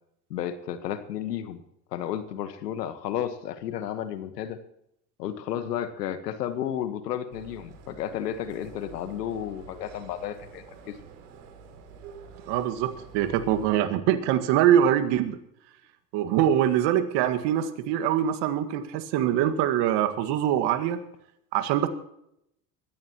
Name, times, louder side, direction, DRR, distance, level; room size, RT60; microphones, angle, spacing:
voice 1, 0.3-1.6 1.9-4.6 5.2-10.9, left 10 dB, 85° left, 11 dB, 1.5 m, -32 dB
sound 1, 7.3-13.8, right 5 dB, 75° right, 3.1 m, -47 dB
voice 2, 12.5-15.4 16.1-21.0 21.5-21.9, right 10 dB, 60° right, 8 dB, 1.9 m, -23 dB
22.5 x 15.0 x 3.0 m, 0.78 s
hypercardioid pair, 85°, 47 cm